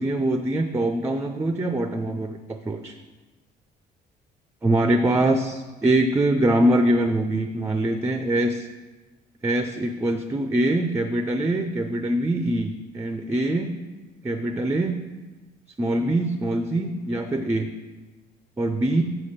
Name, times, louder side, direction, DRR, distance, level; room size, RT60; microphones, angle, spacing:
voice 1, 0.0-2.9 4.6-8.7 9.4-13.7 14.2-15.0 15.8-17.7 18.6-19.0, right 1 dB, 15° right, 7 dB, 0.5 m, -23 dB
7.9 x 5.0 x 5.6 m, 1.2 s
cardioid pair, 110°, 17 cm